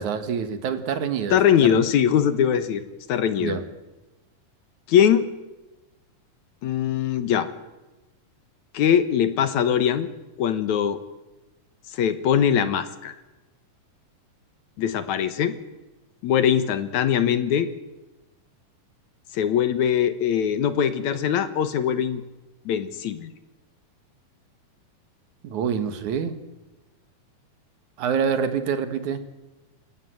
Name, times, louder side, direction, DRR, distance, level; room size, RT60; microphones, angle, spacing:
voice 1, 0.0-1.8 3.4-3.6 25.4-26.4 28.0-29.3, right 7 dB, 70° right, 10 dB, 2.9 m, -26 dB
voice 2, 1.3-2.8 3.1-3.6 4.9-5.3 6.6-7.5 8.7-10.1 10.4-11.0 11.9-13.1 14.8-15.6 16.2-17.7 19.3-22.2 22.7-23.3, left 9 dB, 70° left, 11 dB, 2.4 m, -21 dB
29.5 x 16.0 x 7.8 m, 1.1 s
omnidirectional pair, 3.7 m